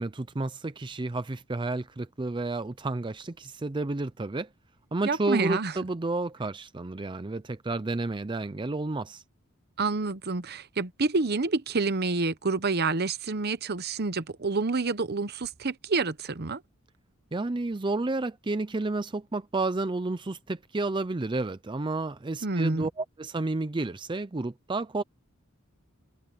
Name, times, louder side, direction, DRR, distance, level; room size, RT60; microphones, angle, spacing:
voice 1, 0.0-4.5 4.9-9.2 17.3-25.0, right 2 dB, 25° right, 0.5 m, -31 dB
voice 2, 5.0-5.7 9.8-16.6 22.4-22.9, right 3 dB, 50° right, 1.0 m, -28 dB
head